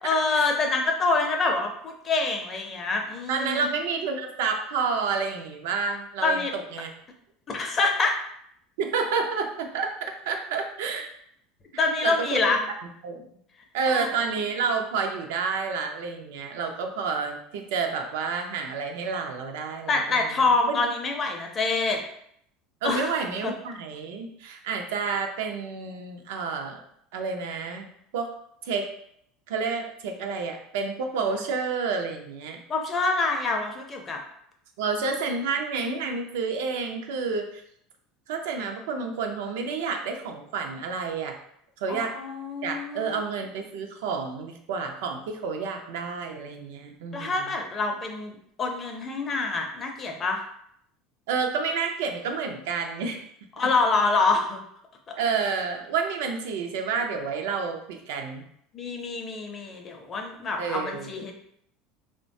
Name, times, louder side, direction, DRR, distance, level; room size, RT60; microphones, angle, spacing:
voice 1, 0.0-3.7 6.2-6.5 7.5-8.2 11.8-12.6 13.9-14.1 19.9-22.0 22.8-23.1 23.4-23.5 32.7-34.2 41.9-43.2 47.1-50.4 53.6-54.6 55.1-55.2 58.7-61.3, left 3 dB, 30° left, 3 dB, 0.5 m, -26 dB
voice 2, 3.3-6.9 8.8-11.1 11.7-12.6 13.0-13.2 13.7-20.3 20.7-20.8 22.8-26.8 27.1-27.9 28.1-28.3 28.6-28.9 29.5-32.6 34.8-37.6 38.3-41.4 41.8-42.1 42.6-47.4 51.3-53.2 55.2-58.4 60.6-61.2, right 5 dB, 85° right, 4 dB, 0.4 m, -29 dB
3.0 x 2.1 x 2.6 m, 0.70 s
supercardioid pair, 130°, 0 cm